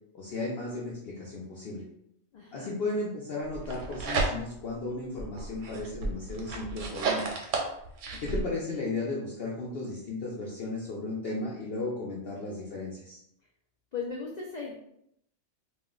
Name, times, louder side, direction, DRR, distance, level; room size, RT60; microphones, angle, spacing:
voice 1, 0.1-1.8 2.5-7.4 8.2-13.2, left 2 dB, 65° left, -4 dB, 0.7 m, -35 dB
voice 2, 2.3-2.7 8.1-8.4 13.9-14.7, left 5 dB, 80° left, -2 dB, 0.3 m, -38 dB
sound 1, 3.5-4.7 5.2-8.4, right 3 dB, 85° right, 0.9 m, -32 dB
2.3 x 2.1 x 3.7 m, 0.74 s
omnidirectional pair, 1.3 m